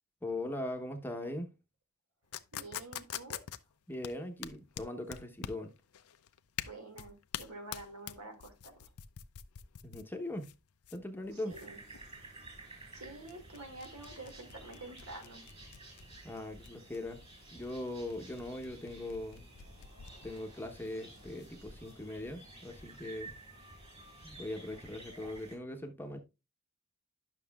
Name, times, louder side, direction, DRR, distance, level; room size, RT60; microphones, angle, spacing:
voice 1, 0.2-1.5 3.9-5.7 9.8-10.5 10.9-11.5 16.2-17.2 17.5-19.5 20.2-23.3 24.2-26.2, left 1 dB, 10° left, 0.9 m, -40 dB
sound 1, 2.3-21.9, left 10 dB, 70° left, 0.5 m, -46 dB
voice 2, 2.5-3.4 6.6-8.9 11.3-11.8 12.9-15.4, right 2 dB, 75° right, 2.1 m, -48 dB
sound 2, 11.5-25.6, right 2 dB, 25° right, 3.9 m, -53 dB
10.5 x 6.3 x 2.3 m
head